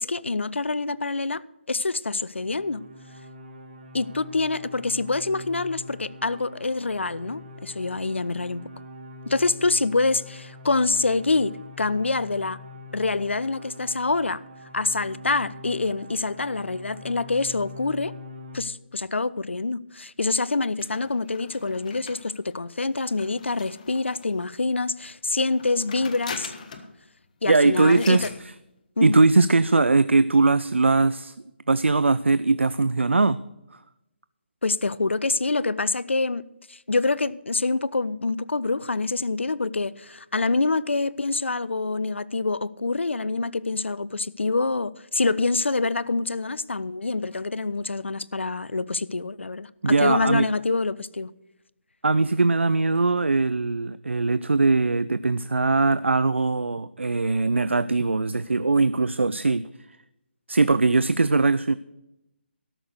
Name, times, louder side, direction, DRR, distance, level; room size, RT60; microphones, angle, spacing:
voice 1, 0.0-2.8 3.9-8.6 9.2-12.6 12.9-14.4 14.7-18.1 18.5-26.5 27.4-28.3 29.0-29.2 34.6-51.3, left 3 dB, 80° left, 0.6 m, -26 dB
sound 1, 2.3-18.6, left 2 dB, 45° right, 2.3 m, -43 dB
sound 2, 20.8-24.5 25.4-27.0 27.2-27.3 27.5-28.4, left 5 dB, 40° left, 1.3 m, -41 dB
voice 2, 27.5-28.5 29.0-31.3 31.7-33.4 49.8-50.5 52.0-59.7 60.5-61.7, right 3 dB, 85° right, 0.4 m, -21 dB
13.0 x 6.6 x 7.9 m
figure-of-eight pair, 150°, 6 cm